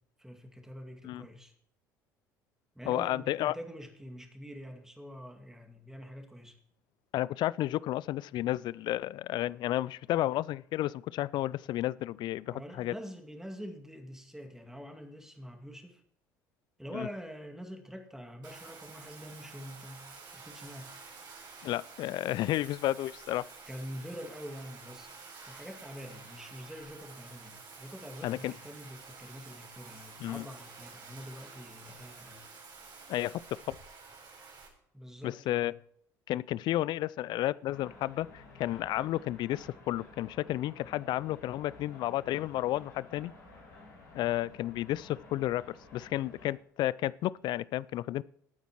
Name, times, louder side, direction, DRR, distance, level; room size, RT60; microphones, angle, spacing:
voice 1, 0.2-1.5 2.7-6.6 12.5-16.0 16.8-20.9 23.7-25.1 25.4-32.4 34.9-35.7, equal, 5° right, 2.2 m, -45 dB
voice 2, 2.9-3.6 7.1-12.9 16.9-17.1 21.6-23.4 28.2-28.5 30.2-30.4 33.1-33.8 35.2-35.7 36.3-43.3 44.1-48.2, left 14 dB, 50° left, 0.4 m, -32 dB
Bathtub (filling or washing), 18.4-34.7, right 4 dB, 45° right, 4.6 m, -50 dB
sound 1, 37.7-46.5, left 3 dB, 85° left, 5.2 m, -53 dB
20.0 x 9.1 x 3.0 m
figure-of-eight pair, 60°, 10 cm